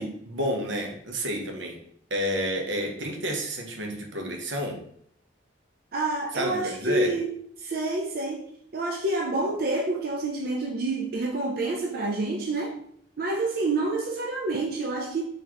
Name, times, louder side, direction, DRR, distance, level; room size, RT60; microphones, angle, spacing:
voice 1, 0.0-1.8 2.1-4.8 6.3-7.1, equal, 85° right, 0.8 m, -30 dB
voice 2, 5.9-12.8 13.2-15.2, right 2 dB, 55° right, 0.5 m, -28 dB
3.9 x 3.2 x 3.0 m
head